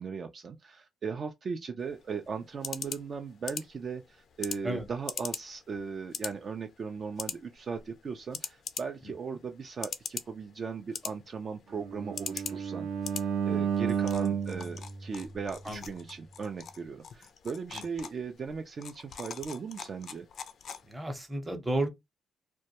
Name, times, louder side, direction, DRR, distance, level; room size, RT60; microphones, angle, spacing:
voice 1, 0.0-12.9 13.1-20.3, right 5 dB, 45° right, 0.3 m, -38 dB
sound 1, 1.8-21.2, left 7 dB, 60° left, 0.3 m, -43 dB
Bowed string instrument, 11.7-15.9, right 7 dB, 80° right, 0.6 m, -32 dB
voice 2, 20.9-21.9, right 1 dB, 15° right, 0.7 m, -32 dB
2.2 x 2.1 x 2.8 m
cardioid pair, 90°, 0 cm